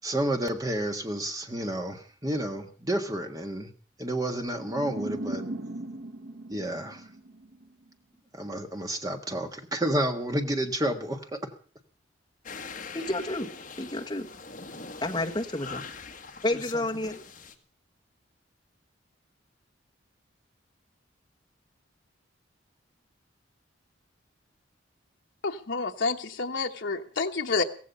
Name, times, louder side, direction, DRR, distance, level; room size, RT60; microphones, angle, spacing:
voice 1, 0.0-3.7 4.0-5.4 6.5-7.0 8.3-11.5, right 1 dB, 20° right, 5 dB, 1.6 m, -30 dB
sound 1, 4.5-7.7, right 1 dB, 75° right, 1.2 m, -38 dB
sound 2, 12.4-17.5, left 4 dB, 40° left, 1.6 m, -42 dB
voice 2, 12.9-13.5 13.8-14.3 15.0-15.9 16.4-17.2, left 2 dB, 20° left, 2 dB, 1.4 m, -30 dB
voice 3, 25.4-27.6, left 4 dB, 70° left, 2 dB, 1.1 m, -29 dB
16.0 x 15.5 x 5.6 m, 0.43 s
head